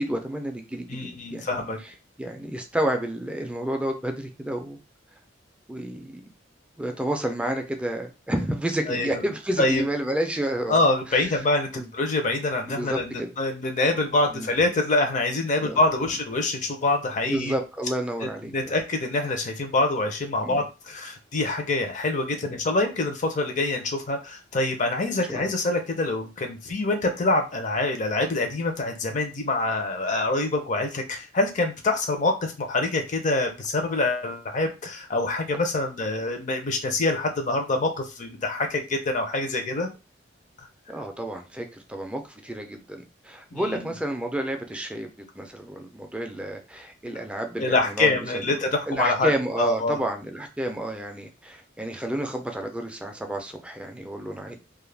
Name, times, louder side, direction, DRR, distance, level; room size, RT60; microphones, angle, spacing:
voice 1, 0.0-1.5 2.2-4.8 5.7-6.2 6.8-10.8 11.7-11.9 12.7-13.3 14.3-14.5 15.6-15.8 17.3-18.8 20.4-20.6 25.3-25.5 40.9-45.1 45.4-48.5 48.9-54.6, right 1 dB, 5° right, 4 dB, 0.4 m, -30 dB
voice 2, 0.9-1.8 8.9-9.2 9.6-9.8 10.7-17.5 18.5-39.9 43.5-43.8 47.6-49.3 49.6-50.0, left 2 dB, 40° left, 4 dB, 0.6 m, -25 dB
2.3 x 2.1 x 3.2 m, 0.28 s
head